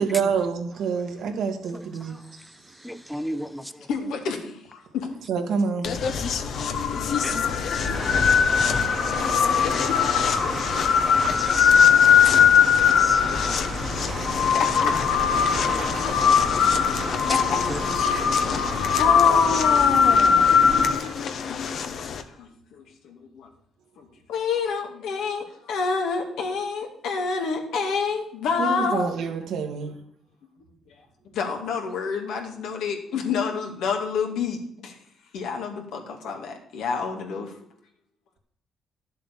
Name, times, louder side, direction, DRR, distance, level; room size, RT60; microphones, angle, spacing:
voice 1, 0.0-2.2 5.3-5.9 28.6-30.0, right 5 dB, 75° right, 1.9 m, -27 dB
voice 2, 2.8-3.7 7.2-7.9 8.3-8.8 10.2-11.7 12.0-12.5 12.7-13.2 14.8-14.9 15.5-15.6 17.7-17.8 18.1-18.8, equal, ahead, 0.8 m, -37 dB
voice 3, 3.9-5.1 14.0-15.2 16.4-16.7 17.1-17.6 18.1-18.3 19.0-20.9 21.5-23.5 24.0-29.1 31.3-35.0 35.3-37.5, left 5 dB, 85° left, 2.5 m, -29 dB
sound 1, 5.8-22.2, left 7 dB, 65° left, 1.2 m, -21 dB
sound 2, 7.9-20.9, right 4 dB, 40° right, 1.4 m, -34 dB
11.5 x 7.5 x 6.8 m
cardioid pair, 90°, 0 cm